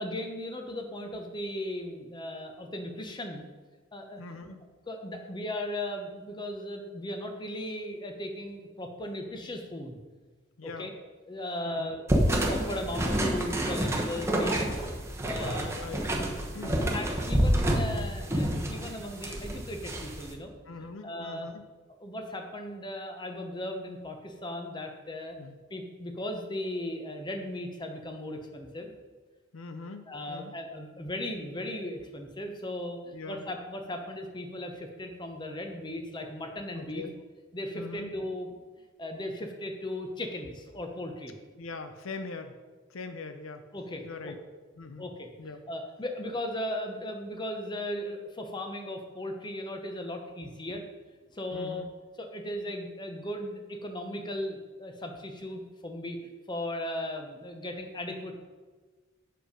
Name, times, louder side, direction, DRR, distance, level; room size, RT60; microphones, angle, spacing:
voice 1, 0.0-3.4 3.9-4.5 4.9-10.0 10.6-10.9 11.3-14.9 15.2-15.8 16.9-20.5 21.0-21.5 22.0-25.4 25.7-28.9 30.1-37.1 37.5-38.5 39.0-41.3 43.7-44.3 45.0-45.3 45.7-50.8 51.3-51.9 52.2-58.3, left 1 dB, 20° left, 4 dB, 0.9 m, -37 dB
voice 2, 4.2-4.6 10.6-10.9 11.7-12.0 15.7-16.0 16.5-16.9 20.7-21.7 25.4-25.6 29.5-30.5 33.1-33.4 36.8-37.1 37.7-38.1 41.6-42.6 42.9-43.7 44.0-44.4 44.8-45.0 45.4-45.6 51.5-51.9, left 3 dB, 75° left, 8 dB, 0.6 m, -42 dB
sound 1, 12.1-20.3, right 1 dB, 15° right, 1.0 m, -28 dB
7.7 x 6.6 x 5.1 m, 1.3 s
head